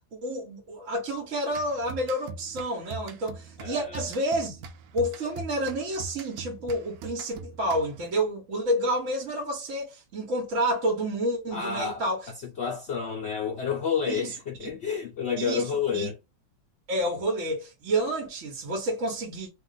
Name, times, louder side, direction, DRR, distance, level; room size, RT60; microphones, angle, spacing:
voice 1, 0.1-4.6 4.9-12.3 14.1-14.3 14.6-14.7 15.4-16.1 16.9-19.5, right 1 dB, 50° right, 1.2 m, -29 dB
sound 1, 1.5-8.2, right 4 dB, 70° right, 0.9 m, -42 dB
voice 2, 3.6-4.0 11.5-12.0 12.4-16.1, left 6 dB, 70° left, 0.6 m, -30 dB
2.9 x 2.3 x 3.8 m
omnidirectional pair, 1.9 m